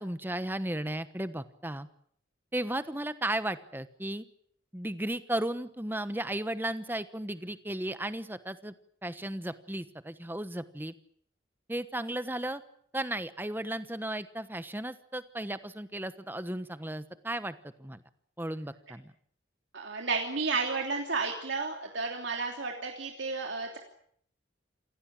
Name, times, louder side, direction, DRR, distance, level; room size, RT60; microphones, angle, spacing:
voice 1, 0.0-1.9 2.5-4.2 4.7-8.7 9.0-10.9 11.7-12.6 12.9-18.0 18.4-19.1, right 1 dB, 10° right, 12 dB, 1.1 m, -35 dB
voice 2, 19.7-23.8, right 4 dB, 70° right, 2 dB, 3.1 m, -32 dB
28.0 x 16.5 x 8.9 m, 0.64 s
head